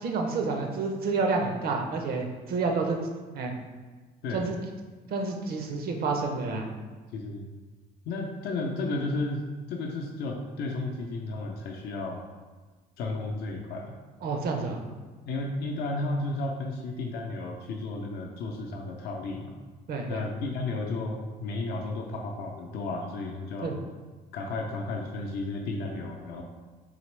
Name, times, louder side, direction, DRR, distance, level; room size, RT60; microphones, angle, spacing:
voice 1, 0.0-3.0 3.3-3.5 4.3-4.6 5.1-6.7 14.2-14.8 19.9-20.2 23.6-23.7, right 4 dB, 65° right, 3 dB, 0.7 m, -29 dB
voice 2, 7.1-7.4 8.1-12.2 13.0-14.0 15.3-19.5 20.1-23.7 24.3-26.4, left 2 dB, 75° left, 1 dB, 0.5 m, -33 dB
4.0 x 2.9 x 3.2 m, 1.4 s
cardioid pair, 110°, 17 cm